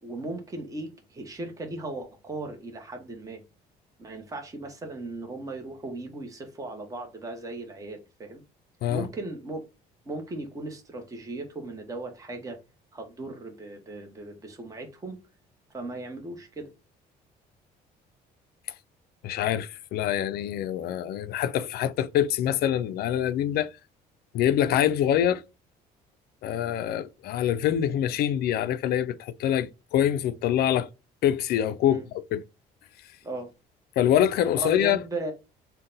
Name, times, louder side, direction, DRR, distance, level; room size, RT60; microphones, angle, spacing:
voice 1, 0.0-3.4 4.0-8.4 8.9-9.6 10.1-12.6 12.9-15.2 15.7-16.7 31.9-32.0 33.2-33.5 34.5-35.3, right 2 dB, 20° right, 1.0 m, -37 dB
voice 2, 19.2-23.7 24.3-25.4 26.4-30.9 31.2-32.0 32.3-32.4 34.0-35.0, left 10 dB, 70° left, 0.4 m, -25 dB
3.8 x 2.2 x 3.8 m
cardioid pair, 110°, 17 cm